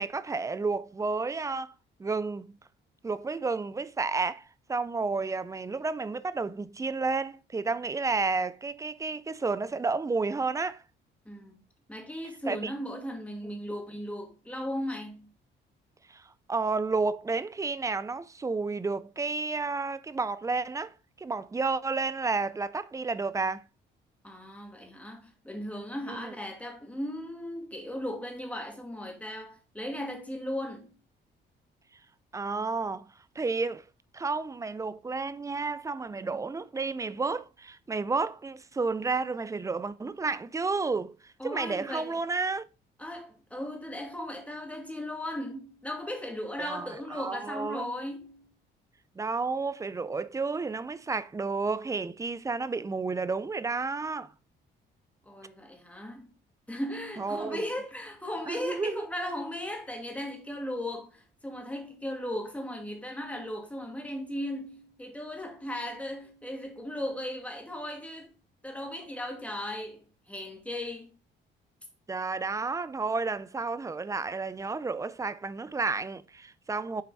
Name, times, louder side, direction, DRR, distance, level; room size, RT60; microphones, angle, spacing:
voice 1, 0.0-1.7 2.0-2.5 3.0-10.8 12.5-12.7 13.4-13.6 16.1-23.6 26.1-26.3 32.3-33.1 33.4-33.8 34.1-42.6 46.6-47.9 49.2-54.3 57.2-57.6 58.5-59.1 72.1-77.0, right 4 dB, 15° right, 0.5 m, -31 dB
voice 2, 11.3-11.6 11.9-15.3 24.2-30.9 41.4-42.2 43.0-48.5 55.2-56.3 56.7-68.3 68.6-71.1, left 1 dB, 5° left, 2.3 m, -37 dB
7.4 x 4.5 x 4.1 m
cardioid pair, 90°, 20 cm